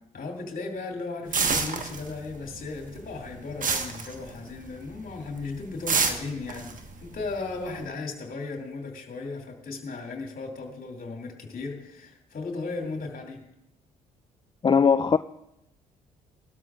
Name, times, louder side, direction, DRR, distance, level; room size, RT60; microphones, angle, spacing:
voice 1, 0.1-6.7 7.0-13.4, left 3 dB, 45° left, 2.6 m, -36 dB
sound 1, 1.3-2.5 2.7-4.8 5.1-5.4 5.9-7.8, right 5 dB, 40° right, 1.4 m, -28 dB
voice 2, 14.6-15.2, left 6 dB, 25° left, 0.4 m, -19 dB
19.5 x 12.5 x 2.4 m
hypercardioid pair, 50°, 20 cm